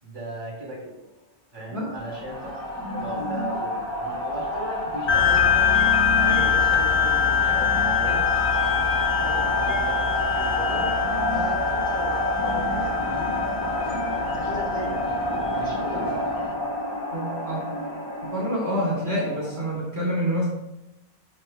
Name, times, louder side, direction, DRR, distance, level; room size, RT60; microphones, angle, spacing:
voice 1, 0.0-1.0 1.5-5.8 6.1-8.3 9.2-10.8 11.3-13.3 14.3-14.9 15.5-16.1, right 1 dB, 50° right, -3 dB, 3.4 m, -37 dB
sound 1, 2.0-19.7, left 1 dB, 45° left, 2.7 m, -28 dB
sound 2, 5.1-16.0, left 7 dB, 85° left, 2.4 m, -24 dB
voice 2, 17.1-17.6 18.2-20.5, equal, 70° right, -5 dB, 3.0 m, -27 dB
12.0 x 11.0 x 2.3 m, 0.90 s
omnidirectional pair, 1.1 m